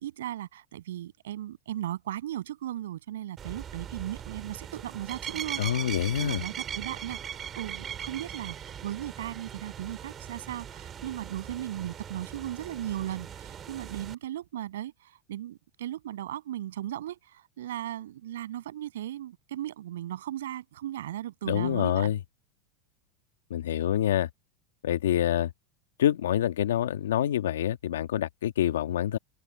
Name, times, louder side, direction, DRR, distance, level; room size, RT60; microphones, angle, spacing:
voice 1, 0.0-22.1, right 12 dB, 85° right, 7.5 m, -37 dB
sound 1, 3.4-14.1, right 9 dB, 30° right, 3.2 m, -40 dB
voice 2, 5.6-6.4 21.4-22.2 23.5-24.3 24.8-25.5 26.0-29.2, left 11 dB, 90° left, 1.6 m, -26 dB
hypercardioid pair, 115°, 0 cm